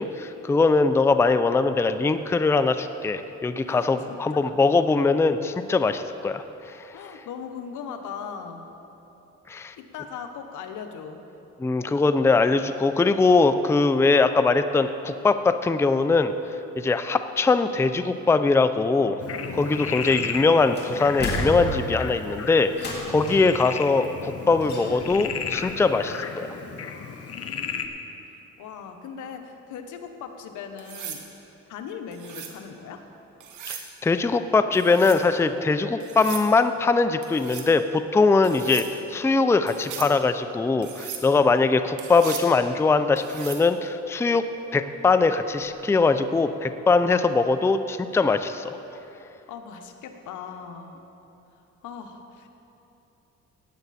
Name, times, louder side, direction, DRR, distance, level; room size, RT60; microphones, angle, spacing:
voice 1, 0.0-6.4 9.5-9.7 11.6-16.3 16.8-19.2 19.5-26.5 33.7-44.4 44.7-48.8, left 3 dB, 10° left, 10 dB, 0.4 m, -21 dB
voice 2, 3.7-4.6 6.9-8.7 9.8-11.2 27.3-31.2 31.7-33.1 49.5-51.1 51.8-52.5, left 7 dB, 80° left, 6 dB, 1.0 m, -39 dB
Frog, 19.2-27.9, left 6 dB, 50° left, 1.0 m, -34 dB
sound 1, 20.0-20.4 20.8-22.1 22.7-23.5 24.6-25.3 25.6-25.7, left 1 dB, 35° left, 3.1 m, -32 dB
sound 2, 30.8-31.2 32.1-32.6 33.4-33.9 34.7-35.2 36.0-36.5 37.2-37.7 38.4-38.9 39.7-40.1 40.8-41.3 42.0-42.5 43.2-43.7 45.6-45.8, right 8 dB, 80° right, 1.3 m, -38 dB
17.0 x 9.3 x 4.2 m, 3.0 s
cardioid pair, 90°, 30 cm